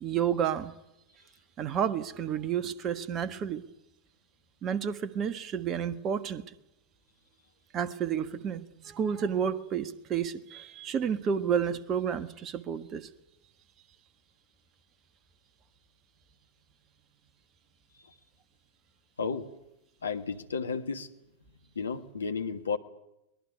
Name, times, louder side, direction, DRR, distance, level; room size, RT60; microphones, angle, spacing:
voice 1, 0.0-0.7 1.6-3.6 4.6-6.4 7.7-13.1, right 8 dB, 30° right, 1.4 m, -30 dB
voice 2, 19.2-19.5 20.0-21.1 21.7-22.8, left 5 dB, 70° left, 1.6 m, -32 dB
23.0 x 20.0 x 9.6 m
figure-of-eight pair, 90°, 0 cm